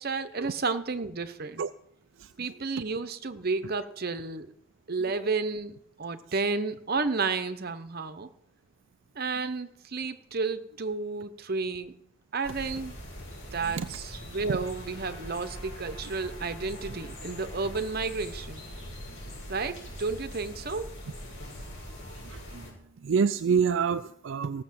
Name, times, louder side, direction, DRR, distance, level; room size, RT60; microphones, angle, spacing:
voice 1, 0.0-1.6 2.4-4.5 4.9-8.3 9.2-12.0 12.3-13.0 13.5-18.7 19.5-20.9, right 4 dB, 50° right, 11 dB, 0.9 m, -32 dB
sound 1, 12.4-22.7, equal, 65° left, 5.8 m, -42 dB
voice 2, 22.3-22.7 23.0-24.6, right 6 dB, 65° right, 10 dB, 0.4 m, -27 dB
16.0 x 6.7 x 7.6 m, 0.73 s
head